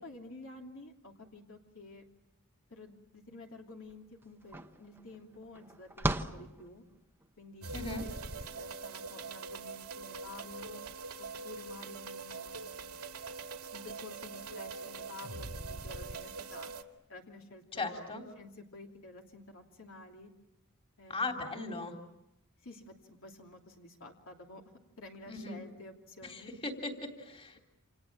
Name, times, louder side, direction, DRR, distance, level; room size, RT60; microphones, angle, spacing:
voice 1, 0.0-2.0 2.7-6.8 7.4-10.8 11.2-12.9 13.7-16.7 17.1-20.3 21.0-21.5 22.6-24.6 25.0-26.5, left 2 dB, 65° left, 1 dB, 2.9 m, -51 dB
sound 1, 3.9-4.0 4.2-7.3, right 1 dB, 10° right, 1.0 m, -37 dB
sound 2, 7.6-16.8, right 4 dB, 85° right, 2.3 m, -43 dB
voice 2, 7.7-8.0 17.7-18.2 21.1-21.9 25.3-25.6 26.2-27.6, left 3 dB, 25° left, 3 dB, 3.4 m, -38 dB
29.0 x 27.5 x 7.5 m, 0.87 s
head